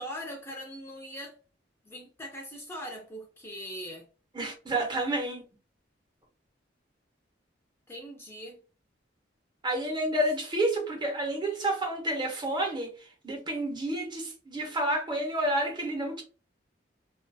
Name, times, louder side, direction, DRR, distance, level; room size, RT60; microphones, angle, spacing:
voice 1, 0.0-1.3 1.9-4.1 7.9-8.6, equal, 15° left, 0.4 m, -41 dB
voice 2, 4.3-5.4 9.6-12.9 13.2-16.2, right 1 dB, 25° right, 0.7 m, -29 dB
2.2 x 2.1 x 2.6 m
head